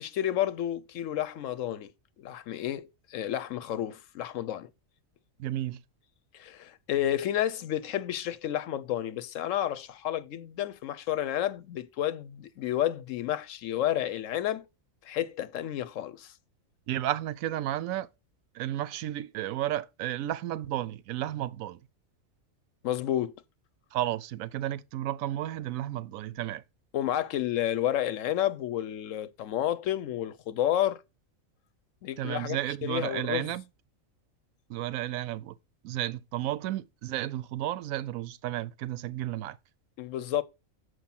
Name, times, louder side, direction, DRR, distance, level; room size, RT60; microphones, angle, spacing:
voice 1, 0.0-1.9 2.2-4.7 6.3-14.7 15.0-16.3 22.8-23.3 26.9-31.0 32.0-33.5 40.0-40.4, left 12 dB, 70° left, 1.0 m, -31 dB
voice 2, 5.4-5.8 16.9-18.1 18.5-21.8 23.9-26.6 32.2-33.6 34.7-35.6 35.8-39.6, right 13 dB, 80° right, 1.0 m, -32 dB
7.0 x 4.9 x 5.7 m
omnidirectional pair, 1.4 m